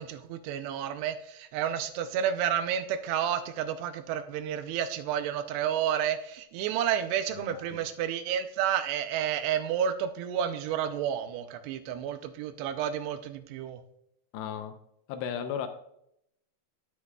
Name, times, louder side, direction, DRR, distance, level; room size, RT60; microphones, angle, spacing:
voice 1, 0.0-13.8, right 9 dB, 80° right, 9 dB, 2.7 m, -30 dB
voice 2, 7.3-7.6 14.3-14.8 15.1-15.7, left 8 dB, 85° left, 7 dB, 2.9 m, -35 dB
17.0 x 6.4 x 2.3 m, 0.75 s
omnidirectional pair, 4.9 m